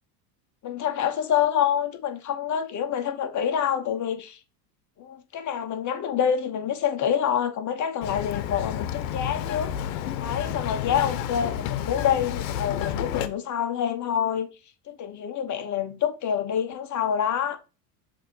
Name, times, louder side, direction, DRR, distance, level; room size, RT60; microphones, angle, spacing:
voice 1, 0.6-4.4 5.0-9.7 10.2-14.5 14.9-17.6, left 8 dB, 35° left, 1.1 m, -27 dB
Bird vocalization bird call bird song, 8.0-13.3, left 10 dB, 85° left, 0.9 m, -30 dB
6.5 x 2.9 x 5.5 m
supercardioid pair, 115°, 49 cm